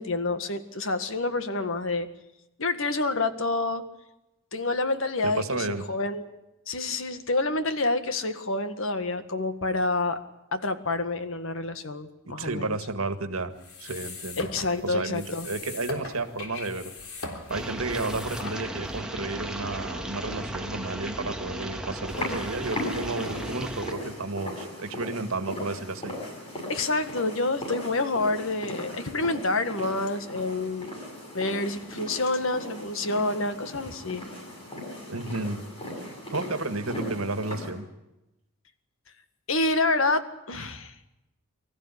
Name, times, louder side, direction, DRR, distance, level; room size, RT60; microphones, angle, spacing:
voice 1, 0.0-2.1 2.6-3.8 4.5-6.2 6.7-10.2 10.5-12.8 14.4-15.5 26.7-30.9 31.3-34.2 39.5-40.9, left 2 dB, 65° left, 10 dB, 1.8 m, -28 dB
voice 2, 5.2-5.8 12.4-13.5 13.8-14.5 14.8-16.9 17.5-26.2 35.1-35.6 36.3-37.9, right 3 dB, 75° right, 9 dB, 1.9 m, -32 dB
sound 1, 13.5-19.0, left 3 dB, 90° left, 3.9 m, -40 dB
sound 2, 17.5-23.9, right 1 dB, 5° right, 1.7 m, -35 dB
sound 3, 22.1-37.7, left 1 dB, 30° left, 7.9 m, -38 dB
24.5 x 14.5 x 9.9 m, 0.94 s
head